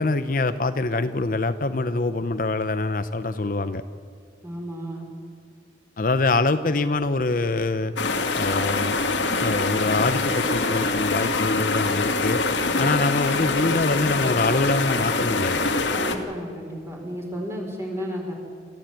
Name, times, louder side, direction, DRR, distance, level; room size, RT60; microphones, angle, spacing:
voice 1, 0.0-3.8 6.0-7.9 8.3-9.0 9.4-12.4 12.8-15.6, left 3 dB, 45° left, 10 dB, 0.7 m, -24 dB
voice 2, 4.4-5.1 12.6-12.9 15.9-18.3, equal, 15° right, 0 dB, 4.5 m, -33 dB
sound 1, 8.0-16.2, left 3 dB, 80° left, 2.0 m, -24 dB
27.5 x 14.5 x 9.0 m, 2.1 s
head